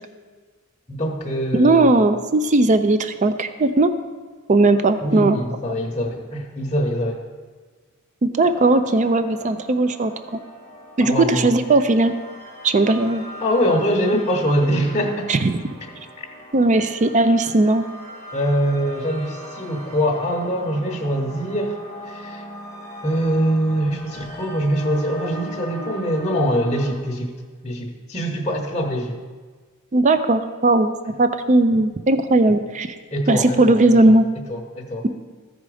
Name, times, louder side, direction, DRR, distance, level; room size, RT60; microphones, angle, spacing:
voice 1, 0.9-1.9 5.0-7.2 11.0-11.5 13.4-15.5 18.3-22.4 23.0-27.3 27.6-29.2 33.1-34.2 34.5-35.1, equal, 20° left, -1 dB, 1.0 m, -23 dB
voice 2, 1.5-3.9 4.5-5.4 8.2-10.4 11.0-12.1 12.6-13.3 15.3-15.5 16.5-17.8 29.9-30.9 31.2-32.9 33.3-34.3, right 2 dB, 35° right, 10 dB, 0.4 m, -17 dB
sound 1, 8.4-26.9, equal, 65° right, 1.7 m, -39 dB
14.5 x 5.0 x 4.9 m, 1.5 s
head